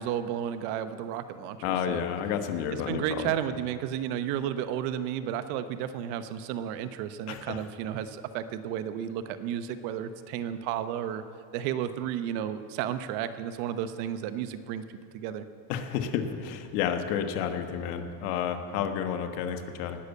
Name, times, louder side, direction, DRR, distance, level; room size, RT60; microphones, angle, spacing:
voice 1, 0.0-2.0 2.9-11.2 11.5-14.8 15.1-15.4, right 10 dB, 75° right, 11 dB, 1.0 m, -32 dB
voice 2, 1.6-3.3 7.3-7.6 15.7-20.0, left 8 dB, 85° left, 6 dB, 1.5 m, -31 dB
18.5 x 6.7 x 8.3 m, 2.4 s
supercardioid pair, 125°, 45 cm